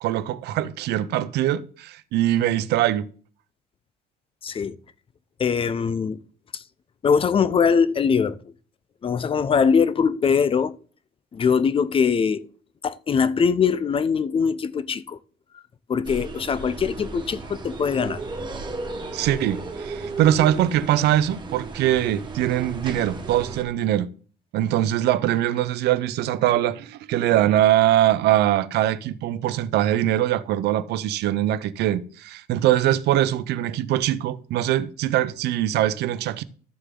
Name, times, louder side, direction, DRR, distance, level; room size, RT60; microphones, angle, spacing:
voice 1, 0.0-3.0 19.1-24.1 24.5-36.4, right 12 dB, 80° right, 0.7 m, -22 dB
voice 2, 4.4-4.8 5.4-6.2 6.5-6.6 7.0-8.4 9.0-10.8 11.3-12.5 12.8-15.2 15.9-18.2, left 6 dB, 30° left, 0.6 m, -22 dB
sound 1, 16.0-23.6, right 3 dB, 30° right, 1.7 m, -34 dB
13.5 x 6.8 x 3.8 m
cardioid pair, 110°, 17 cm